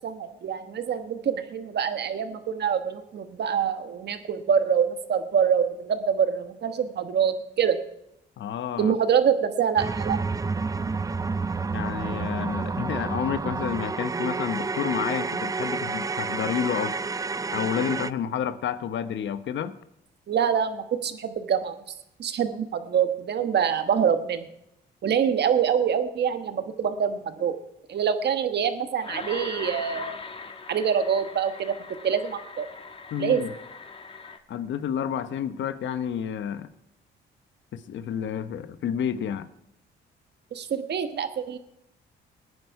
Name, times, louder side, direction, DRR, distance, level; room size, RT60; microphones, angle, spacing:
voice 1, 0.0-7.8 8.8-10.2 16.8-16.9 20.3-21.7 22.2-24.5 25.0-27.5 27.9-30.1 30.7-31.7 32.0-32.7 33.2-33.4 40.5-41.6, right 7 dB, 60° right, 9 dB, 1.4 m, -25 dB
voice 2, 8.4-8.9 11.7-16.9 17.5-19.7 33.1-33.5 34.5-36.7 37.7-39.5, left 8 dB, 70° left, 12 dB, 1.0 m, -30 dB
sound 1, 9.8-18.1, right 4 dB, 15° right, 0.4 m, -29 dB
sound 2, 29.0-34.4, left 4 dB, 30° left, 1.4 m, -40 dB
20.0 x 9.6 x 4.8 m, 0.81 s
cardioid pair, 90°, 20 cm